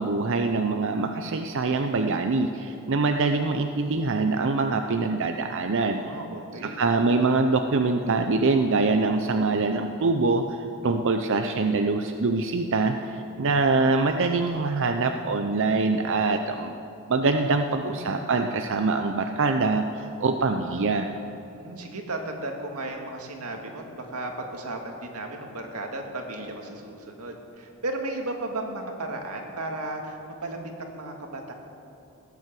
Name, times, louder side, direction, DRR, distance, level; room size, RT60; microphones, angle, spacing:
voice 1, 0.0-6.0 6.6-16.7 17.1-21.1, right 3 dB, 60° right, 6 dB, 0.6 m, -24 dB
voice 2, 5.9-6.8 17.7-18.2 21.5-31.5, right 2 dB, 90° right, 2 dB, 2.0 m, -35 dB
17.0 x 9.5 x 7.6 m, 2.7 s
head